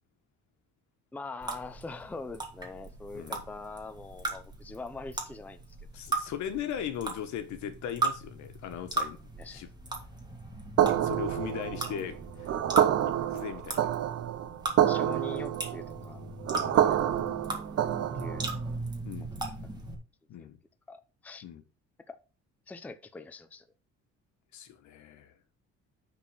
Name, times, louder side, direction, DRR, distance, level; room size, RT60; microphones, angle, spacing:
voice 1, 1.1-5.6 9.4-9.6 14.9-16.3 16.6-17.4 17.8-18.5 20.4-20.5 20.9-21.4 22.1-22.2 22.7-23.7, left 3 dB, 5° left, 0.5 m, -43 dB
sound 1, 1.4-19.9, right 2 dB, 15° right, 1.8 m, -38 dB
voice 2, 5.9-9.7 11.0-12.5 13.2-14.0 16.5-16.8 19.0-19.3 20.3-20.6 21.4-21.6 24.5-25.4, left 9 dB, 75° left, 1.7 m, -38 dB
Anvil loop, 10.8-18.6, right 11 dB, 55° right, 0.8 m, -27 dB
9.6 x 4.2 x 5.9 m
cardioid pair, 160°, 29 cm